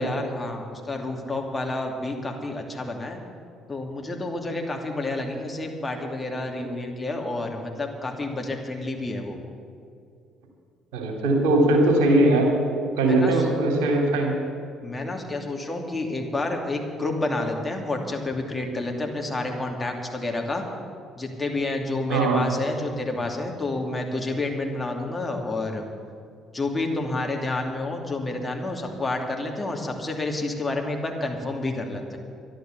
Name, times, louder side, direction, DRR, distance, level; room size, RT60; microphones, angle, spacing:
voice 1, 0.0-3.2 3.7-9.4 13.1-13.4 14.8-20.6 21.2-25.8 26.5-32.2, left 2 dB, 20° left, 1 dB, 2.7 m, -29 dB
voice 2, 10.9-12.5 13.0-14.3 22.1-22.4, right 2 dB, 75° right, 1 dB, 3.0 m, -20 dB
11.5 x 11.5 x 8.1 m, 2.3 s
hypercardioid pair, 55°, 0 cm